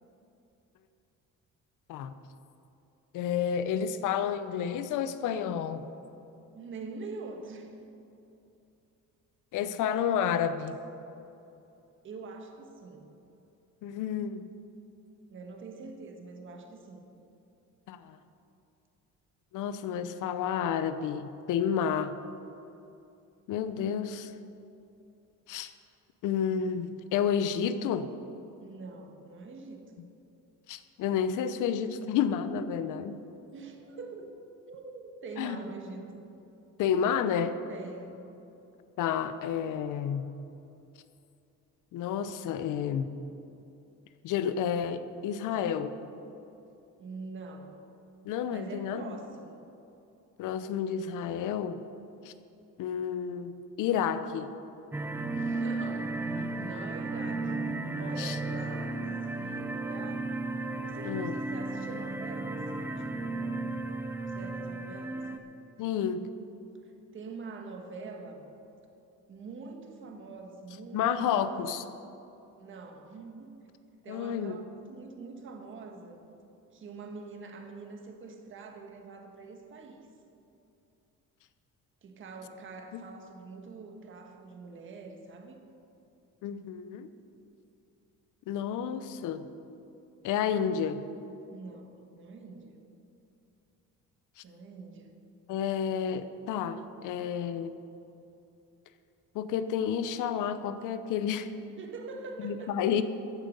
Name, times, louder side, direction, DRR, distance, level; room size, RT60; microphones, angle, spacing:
voice 1, 3.1-5.8 9.5-10.8 13.8-14.5 17.9-18.2 19.5-22.2 23.5-24.3 25.5-25.7 26.2-28.1 30.7-33.2 35.4-35.6 36.8-37.6 39.0-40.2 41.9-43.1 44.2-46.0 48.2-49.1 50.4-51.8 52.2-52.3 52.8-53.5 53.8-54.5 58.2-58.4 61.0-61.3 65.8-66.3 70.9-71.8 74.1-74.6 82.9-83.0 86.4-87.1 88.5-89.5 90.2-91.0 95.5-97.7 99.3-101.5 102.4-103.0, left 8 dB, 75° left, 12 dB, 0.8 m, -30 dB
voice 2, 6.5-7.9 12.0-13.1 15.3-17.0 28.6-30.0 33.5-34.4 34.7-36.2 37.7-38.2 47.0-47.8 48.5-49.6 55.3-57.6 58.0-60.3 60.8-63.6 64.3-65.3 66.8-68.5 69.3-71.6 72.6-73.6 74.0-76.2 76.7-80.1 82.0-85.6 91.5-92.8 94.4-95.2 101.8-102.7, right 3 dB, 40° right, 4 dB, 1.5 m, -45 dB
sound 1, 54.9-65.4, right 2 dB, 5° right, 0.5 m, -34 dB
14.5 x 10.5 x 5.4 m, 2.8 s
cardioid pair, 165°, 31 cm